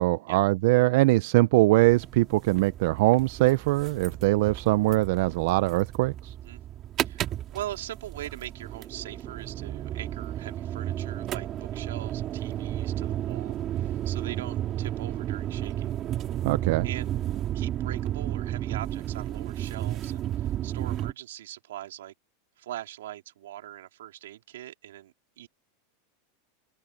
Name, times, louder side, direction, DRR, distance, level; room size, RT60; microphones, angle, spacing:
voice 1, 0.0-6.3 16.4-16.9, right 20 dB, 60° right, 0.5 m, -22 dB
sound 1, 1.8-21.1, right 12 dB, 30° right, 2.6 m, -33 dB
voice 2, 7.1-15.9 16.8-17.1 17.5-22.1 22.6-25.5, right 13 dB, 85° right, 3.5 m, -41 dB
open air
supercardioid pair, 145°, 0 cm